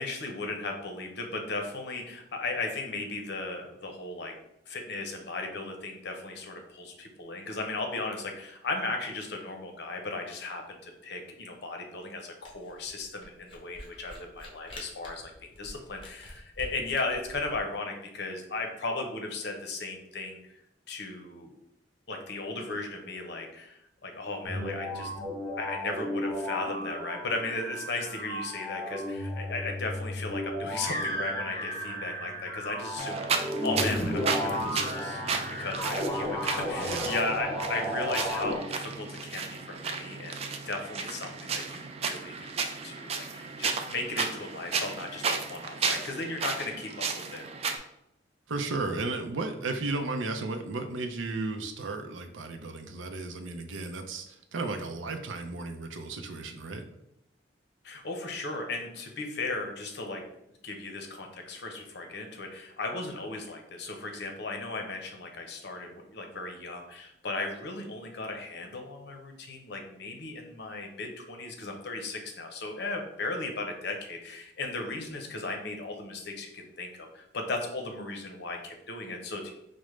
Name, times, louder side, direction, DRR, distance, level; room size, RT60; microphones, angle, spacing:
voice 1, 0.0-4.3 4.7-15.3 15.6-20.6 20.9-21.5 22.1-25.1 25.6-47.1 47.3-47.4 57.8-60.2 60.6-79.5, left 3 dB, 60° left, 3 dB, 0.7 m, -36 dB
Camera, 12.4-17.6, left 1 dB, 30° left, 0.8 m, -47 dB
sound 1, 24.4-38.6, equal, 10° left, 1.2 m, -33 dB
sound 2, 33.0-47.8, right 5 dB, 35° right, 0.3 m, -34 dB
voice 2, 36.8-37.1 48.5-56.9, right 3 dB, 90° right, 6 dB, 0.5 m, -34 dB
4.9 x 2.1 x 3.1 m, 0.81 s
head